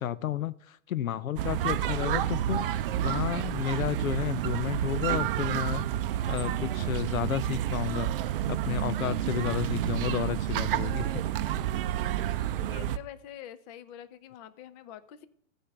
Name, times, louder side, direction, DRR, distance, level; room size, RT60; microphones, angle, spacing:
voice 1, 0.0-2.6 3.0-5.9 6.3-11.1 11.5-11.6, left 10 dB, 90° left, 19 dB, 0.6 m, -32 dB
Ambience of a playground in the park, 1.4-13.0, right 11 dB, 45° right, 0.5 m, -30 dB
voice 2, 12.0-15.3, left 11 dB, 30° left, 13 dB, 0.7 m, -46 dB
15.0 x 5.1 x 5.8 m, 0.68 s
hypercardioid pair, 125°, 40 cm